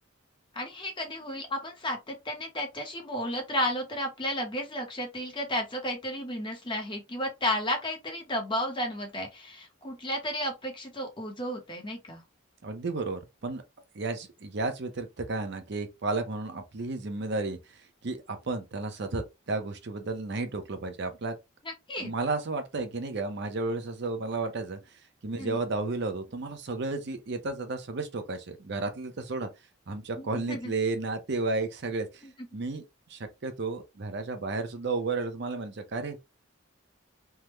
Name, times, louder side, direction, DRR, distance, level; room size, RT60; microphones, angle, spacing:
voice 1, 0.5-12.2 21.6-22.1 25.3-25.6 30.2-30.7, left 1 dB, 25° left, 0.8 m, -33 dB
voice 2, 12.6-13.6 13.9-21.4 22.0-24.8 25.2-29.5 29.9-32.3 32.5-32.8 33.1-36.2, right 3 dB, 55° right, 0.6 m, -32 dB
3.5 x 2.1 x 2.9 m
head